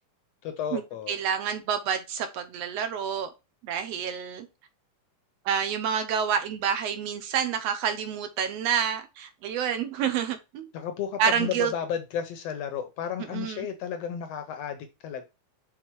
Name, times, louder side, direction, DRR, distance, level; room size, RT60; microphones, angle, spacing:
voice 1, 0.4-1.1 10.7-15.2, left 8 dB, 75° left, 1.5 m, -33 dB
voice 2, 1.1-3.3 3.6-4.5 5.4-10.7 11.2-11.7 13.3-13.7, right 8 dB, 75° right, 1.6 m, -28 dB
6.1 x 4.1 x 4.6 m
omnidirectional pair, 3.6 m